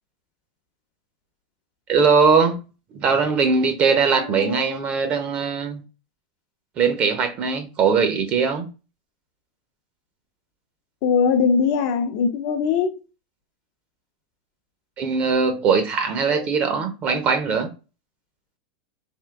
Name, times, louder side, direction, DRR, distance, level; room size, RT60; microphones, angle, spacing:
voice 1, 1.9-2.6 2.9-5.8 6.8-8.7 15.0-17.7, right 5 dB, 35° right, 0.7 m, -20 dB
voice 2, 4.2-4.9 11.0-13.0 16.3-16.4, left 6 dB, 55° left, 0.7 m, -22 dB
3.6 x 2.5 x 3.5 m
supercardioid pair, 140°, 4 cm